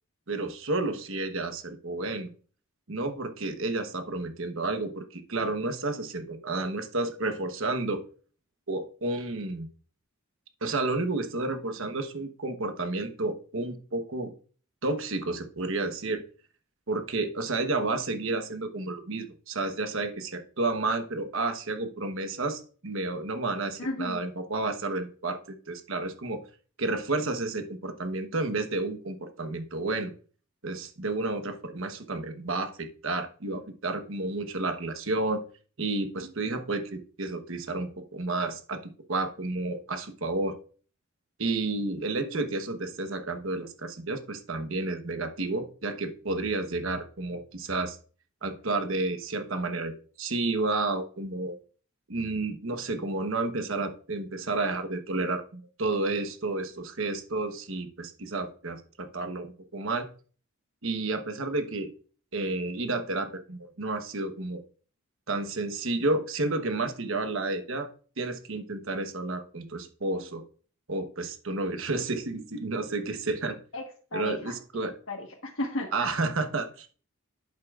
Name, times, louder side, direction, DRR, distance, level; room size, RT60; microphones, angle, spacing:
voice 1, 0.3-2.3 2.9-8.0 8.7-9.7 10.6-14.3 14.8-16.2 16.9-25.4 25.7-26.4 26.8-30.1 30.6-35.4 35.8-38.8 39.1-40.5 41.4-48.0 48.4-51.5 52.1-60.1 60.8-61.9 62.3-64.6 65.3-67.9 68.2-70.4 70.9-73.6 74.1-75.0 75.9-76.9, right 2 dB, 65° right, 7 dB, 1.1 m, -31 dB
voice 2, 23.8-24.2 42.2-42.4 73.7-74.5 75.1-76.2, left 2 dB, 65° left, -1 dB, 1.4 m, -35 dB
11.0 x 8.3 x 2.5 m, 0.41 s
head